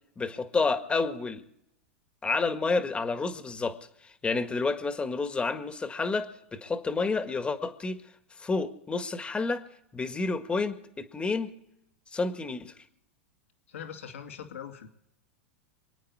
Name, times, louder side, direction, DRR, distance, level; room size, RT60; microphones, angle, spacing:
voice 1, 0.2-1.4 2.2-3.8 4.0-8.0 8.4-9.6 9.9-11.5 12.1-12.7, left 4 dB, 15° left, 9 dB, 1.6 m, -29 dB
voice 2, 13.7-14.9, left 8 dB, 80° left, 5 dB, 2.2 m, -41 dB
27.5 x 9.2 x 4.8 m, 0.80 s
hypercardioid pair, 110°, 7 cm